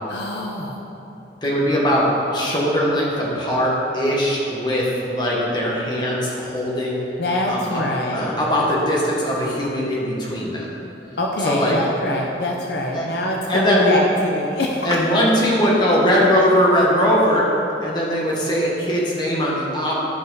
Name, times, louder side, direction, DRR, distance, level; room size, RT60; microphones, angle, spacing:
voice 1, 0.1-0.8 7.2-8.3 11.2-15.0, left 1 dB, 65° left, -1 dB, 0.7 m, -24 dB
voice 2, 1.4-7.0 7.5-7.8 8.1-10.7 11.4-11.8 12.9-13.0 13.5-14.0 14.8-17.4 17.8-20.0, equal, 25° left, -4 dB, 1.5 m, -20 dB
12.5 x 5.4 x 4.0 m, 2.9 s
head